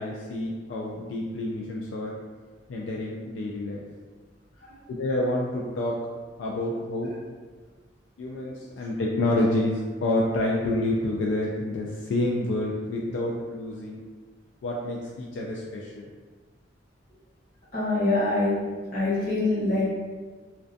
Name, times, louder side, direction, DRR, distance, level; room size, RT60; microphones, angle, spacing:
voice 1, 0.0-2.1 2.7-3.8 4.9-6.1 6.4-7.1 8.2-14.0 14.6-16.0, left 1 dB, 85° left, -2 dB, 0.3 m, -28 dB
voice 2, 17.7-18.6 18.9-19.9, left 2 dB, 50° left, -8 dB, 0.9 m, -24 dB
2.3 x 2.2 x 2.5 m, 1.4 s
head